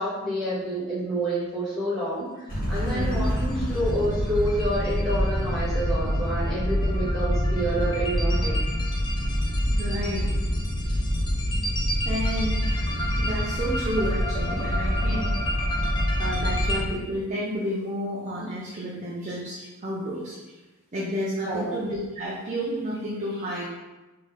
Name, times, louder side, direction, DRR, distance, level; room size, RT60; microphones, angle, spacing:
voice 1, 0.0-8.6 10.8-11.0 21.4-21.7, right 1 dB, ahead, -13 dB, 1.5 m, -28 dB
sound 1, 2.5-16.9, equal, 40° left, 1.5 m, -26 dB
sound 2, 2.9-16.8, equal, 20° left, 0.6 m, -35 dB
voice 2, 2.9-3.2 9.8-10.4 12.0-15.3 16.2-20.4 20.9-23.7, equal, 35° right, -6 dB, 0.7 m, -31 dB
4.0 x 3.4 x 3.4 m, 1.1 s
head